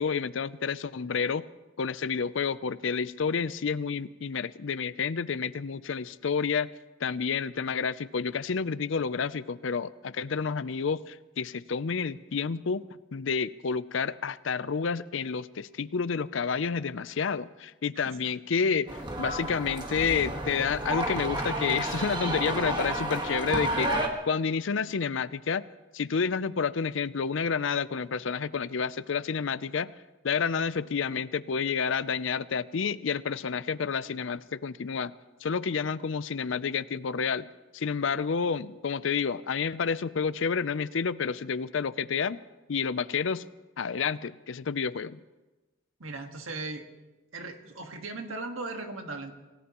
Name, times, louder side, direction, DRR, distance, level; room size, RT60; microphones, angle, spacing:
voice 1, 0.0-1.4 1.8-6.7 7.0-12.8 13.1-18.9 19.2-23.9 24.3-25.6 25.9-29.9 30.2-35.1 35.4-37.5 37.7-42.4 42.7-43.4 43.8-45.2, left 6 dB, 70° left, 16 dB, 0.5 m, -29 dB
sound 1, 18.9-24.1, right 1 dB, 20° right, 1.5 m, -31 dB
voice 2, 46.0-46.9 47.3-49.3, right 3 dB, 85° right, 4 dB, 1.7 m, -38 dB
26.5 x 17.0 x 3.0 m, 1.1 s
head